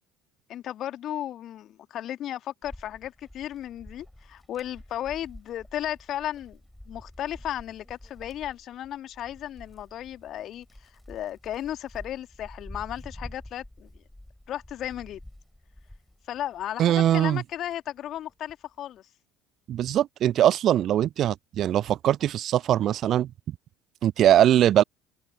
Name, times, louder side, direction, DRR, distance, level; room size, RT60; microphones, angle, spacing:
voice 1, 0.5-6.6 6.9-14.0 14.5-15.2 16.3-19.1, left 12 dB, 45° left, 2.1 m, -35 dB
Wind, 2.6-16.7 17.2-18.7, left 1 dB, 5° left, 5.7 m, -48 dB
voice 2, 16.8-17.4 19.7-23.3 24.0-24.8, right 11 dB, 45° right, 0.4 m, -21 dB
figure-of-eight pair, 60°, 0 cm